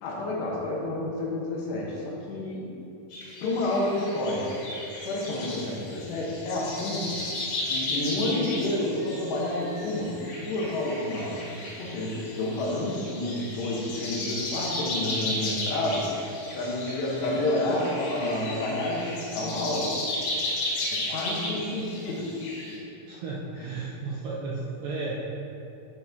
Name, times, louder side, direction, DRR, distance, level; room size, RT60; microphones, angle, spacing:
voice 1, 0.0-2.8 3.4-4.6 5.0-7.2 7.7-16.1 16.5-20.0 20.9-22.4 23.6-23.7, left 1 dB, 85° left, -3 dB, 3.3 m, -29 dB
sound 1, 3.1-22.8, left 2 dB, 65° left, 3.1 m, -35 dB
voice 2, 23.1-25.2, right 3 dB, 80° right, -5 dB, 2.0 m, -34 dB
12.5 x 4.3 x 3.6 m, 2.8 s
omnidirectional pair, 4.8 m